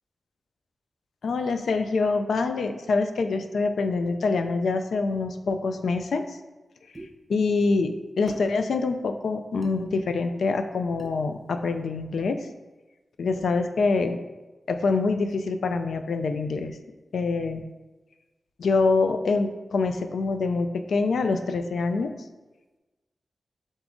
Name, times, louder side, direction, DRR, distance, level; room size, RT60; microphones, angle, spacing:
voice 1, 1.2-6.4 7.3-12.5 13.2-14.2 14.7-16.8 17.1-17.6 18.6-22.1, left 4 dB, 85° left, 7 dB, 0.3 m, -25 dB
sound 1, 6.9-7.1 8.3-8.5 9.6-9.8 11.0-11.2, right 2 dB, 30° right, 0.6 m, -42 dB
4.0 x 3.7 x 3.5 m, 1.2 s
wide cardioid pair, 95°, 0 cm